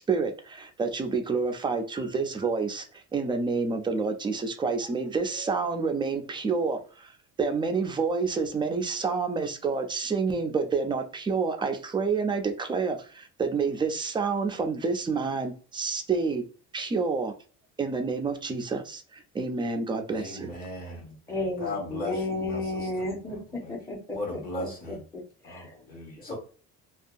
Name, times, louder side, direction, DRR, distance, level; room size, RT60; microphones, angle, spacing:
voice 1, 0.0-2.8 3.1-7.1 7.4-16.4 16.7-17.3 17.8-20.5, right 4 dB, 15° right, 0.3 m, -28 dB
voice 2, 20.1-23.0 23.6-23.7 24.1-25.0 25.4-26.3, left 1 dB, 25° left, 1.3 m, -37 dB
voice 3, 21.3-25.8 26.3-26.4, left 2 dB, 10° left, 0.8 m, -33 dB
2.6 x 2.3 x 2.5 m
cardioid pair, 125°, 33 cm